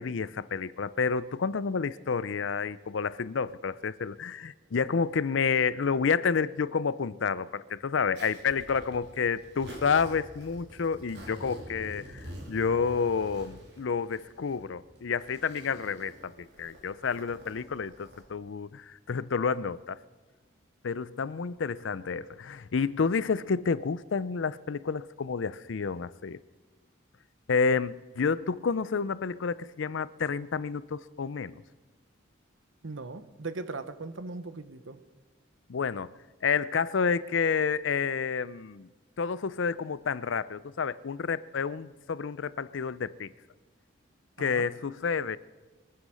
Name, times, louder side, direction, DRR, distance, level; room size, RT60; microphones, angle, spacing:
voice 1, 0.0-20.0 20.8-26.4 27.5-31.6 35.7-36.1 36.4-38.9 39.2-43.3 44.4-45.4, left 5 dB, 75° left, 18 dB, 0.5 m, -29 dB
Zipper (clothing), 8.2-18.2, equal, 60° right, 3.4 m, -47 dB
voice 2, 32.8-35.0 44.4-44.7, right 3 dB, 80° right, 12 dB, 1.0 m, -39 dB
23.0 x 9.4 x 6.3 m, 1.3 s
head